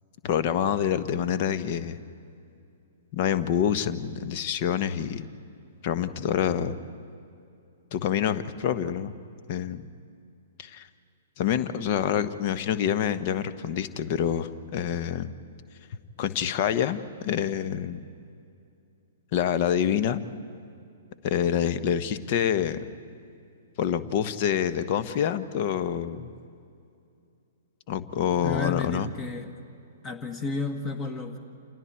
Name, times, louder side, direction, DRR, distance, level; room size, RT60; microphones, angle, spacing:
voice 1, 0.2-2.0 3.1-5.3 5.8-6.8 7.9-9.1 9.5-9.9 10.6-10.9 11.4-15.3 16.2-18.0 19.3-20.2 21.2-22.8 23.8-26.3 27.9-29.1, left 9 dB, 40° left, 12 dB, 1.1 m, -27 dB
voice 2, 28.4-29.5 30.0-31.4, left 4 dB, 25° left, 7 dB, 1.9 m, -32 dB
29.5 x 27.0 x 4.5 m, 2.5 s
figure-of-eight pair, 115°, 0 cm